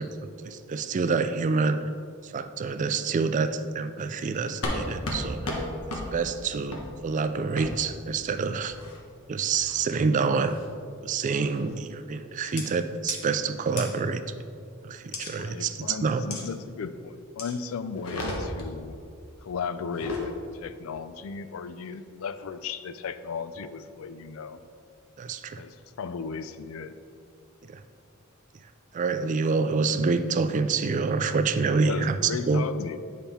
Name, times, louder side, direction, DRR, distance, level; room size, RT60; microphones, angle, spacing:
voice 1, 0.0-1.8 2.2-5.7 6.1-8.8 9.3-10.6 11.0-14.4 14.8-16.2 25.2-25.6 27.7-27.8 28.9-32.6, right 4 dB, 35° right, 10 dB, 0.3 m, -27 dB
sound 1, 4.6-4.8 5.0-5.2 5.4-5.6 5.9-6.0 6.7-6.8 7.6-7.7 8.6-9.0 9.5-9.9 10.4-10.7 11.5-11.7 12.6-12.7 13.1-13.2 13.8-13.9 15.1-15.3 16.3-16.4 17.4-17.5 17.9-18.7 19.8-20.3, left 2 dB, 90° left, 1.2 m, -33 dB
voice 2, 15.4-19.0 19.4-24.6 25.6-27.0 31.8-33.0, left 5 dB, 70° left, 12 dB, 0.4 m, -36 dB
8.9 x 5.6 x 3.4 m, 2.4 s
head